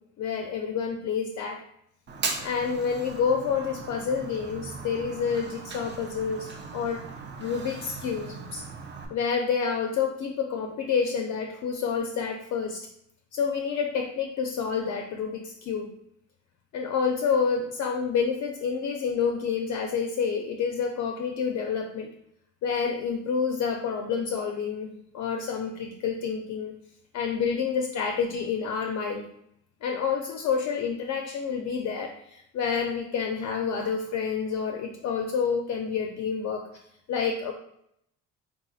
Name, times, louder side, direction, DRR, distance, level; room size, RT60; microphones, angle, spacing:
voice 1, 0.2-1.6 2.4-7.0 7.4-8.6 9.1-12.9 13.3-15.9 16.7-22.1 22.6-26.7 27.1-29.3 29.8-36.6 37.1-37.5, left 6 dB, 50° left, 3 dB, 0.4 m, -28 dB
Fire, 2.1-9.1, right 4 dB, 30° right, 0.5 m, -38 dB
3.7 x 2.5 x 2.3 m, 0.75 s
cardioid pair, 90°, 37 cm